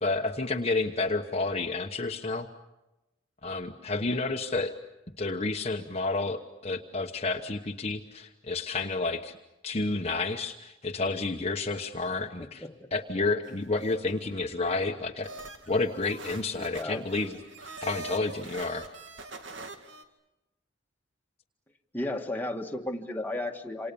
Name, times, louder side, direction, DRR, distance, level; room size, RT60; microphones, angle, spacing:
voice 1, 0.0-2.5 3.4-4.7 5.2-9.4 9.6-12.6 12.9-15.3 15.7-18.9, left 3 dB, 35° left, 3 dB, 1.1 m, -30 dB
voice 2, 12.4-12.8 16.6-17.1 21.9-23.9, left 1 dB, 10° left, 2 dB, 1.7 m, -34 dB
sound 1, 13.4-14.4 15.2-20.0, right 2 dB, 70° right, 2.3 m, -44 dB
28.0 x 27.0 x 7.0 m, 0.98 s
head